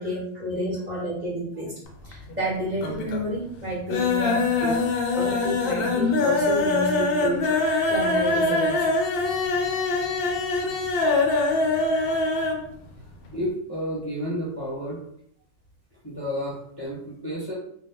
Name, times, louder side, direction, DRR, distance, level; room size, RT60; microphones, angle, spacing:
voice 1, 0.0-4.8 5.1-7.5 7.9-8.9, right 1 dB, 35° right, -7 dB, 1.1 m, -30 dB
sound 1, 1.9-2.5 2.8-3.3 3.6-12.6 12.9-13.0 13.3-13.4, left 3 dB, 60° left, 0.7 m, -23 dB
voice 2, 13.3-15.0 16.0-17.5, equal, 25° left, -8 dB, 0.7 m, -31 dB
2.7 x 2.2 x 3.5 m, 0.69 s
omnidirectional pair, 1.2 m